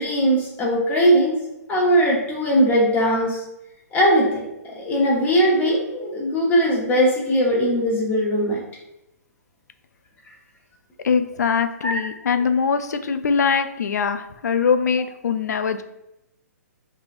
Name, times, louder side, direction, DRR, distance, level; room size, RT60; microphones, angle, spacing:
voice 1, 0.0-1.3 1.7-3.4 3.9-8.6 11.8-11.9, equal, 20° left, -3 dB, 1.0 m, -20 dB
voice 2, 11.0-15.8, left 6 dB, 75° left, 9 dB, 0.4 m, -22 dB
4.4 x 3.3 x 2.5 m, 0.87 s
hypercardioid pair, 130°, 9 cm